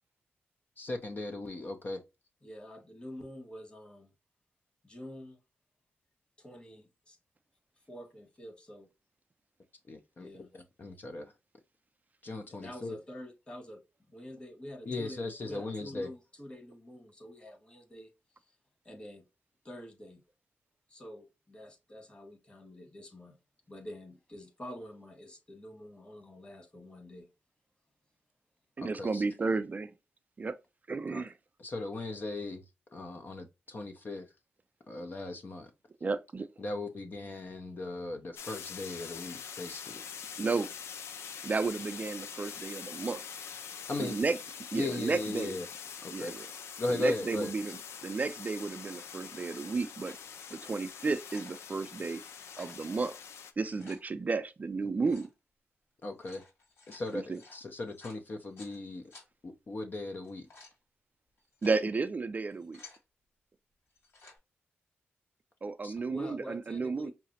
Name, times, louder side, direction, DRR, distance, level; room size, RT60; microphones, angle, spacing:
voice 1, 0.8-2.0 9.9-11.3 12.2-12.9 14.9-16.1 28.8-29.2 31.1-31.2 31.6-32.6 32.9-34.3 34.9-35.7 36.6-40.0 43.9-44.2 44.7-45.7 46.0-46.3 46.8-47.5 56.0-56.4 56.9-59.0 59.4-60.5 65.8-65.9, left 2 dB, 45° left, 0.6 m, -37 dB
voice 2, 2.4-4.1 4.8-5.4 6.4-7.2 7.9-8.9 10.2-10.5 12.5-13.8 14.1-18.1 18.8-19.2 19.6-20.2 20.9-23.4 23.7-27.3 66.1-67.1, equal, 25° left, 1.5 m, -47 dB
voice 3, 28.8-29.9 30.4-30.6 30.9-31.3 36.0-36.5 40.4-40.7 41.4-43.2 44.0-44.4 44.7-45.6 46.1-46.5 46.9-50.2 50.5-52.2 52.6-53.2 53.6-55.3 57.1-57.4 61.6-62.8 65.6-67.1, right 4 dB, 40° right, 0.4 m, -33 dB
sound 1, 38.4-53.5, left 7 dB, 90° left, 0.4 m, -44 dB
sound 2, 44.8-45.2 46.2-47.1 47.4-47.9 48.7-49.0 49.7-50.3 50.7-50.8 51.0-51.6 52.4-52.8 53.5-54.0 55.0-55.3 56.0-58.8 59.1-59.3 60.1-60.8 61.4-61.8 62.4-63.0 63.9-64.4, left 3 dB, 65° left, 2.2 m, -55 dB
5.6 x 2.0 x 2.7 m
cardioid pair, 65°, 4 cm